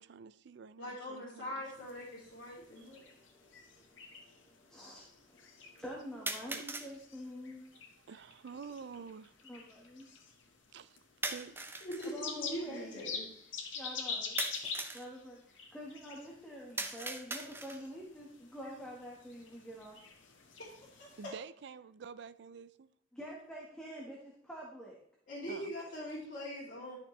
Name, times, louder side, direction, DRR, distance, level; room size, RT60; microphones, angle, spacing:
voice 1, 0.0-1.6 2.8-2.9 6.5-6.6 8.1-9.3 10.7-11.0 11.3-11.7 21.2-22.9 25.5-25.7, right 6 dB, 60° right, 0.4 m, -48 dB
voice 2, 0.8-3.0 11.8-12.3 12.5-13.2 21.0-21.3 25.3-27.0, equal, 45° left, 2.8 m, -42 dB
sound 1, 1.7-21.3, left 5 dB, 90° left, 1.6 m, -47 dB
sound 2, 1.9-2.0 3.0-3.1 6.3-6.9 11.2-12.1 14.4-15.1 16.8-17.9, right 2 dB, 10° right, 0.7 m, -40 dB
voice 3, 2.7-7.7 9.4-10.1 12.0-13.0 13.7-14.4 14.9-20.0 23.1-25.0, equal, 5° left, 1.4 m, -47 dB
11.5 x 6.6 x 3.2 m
head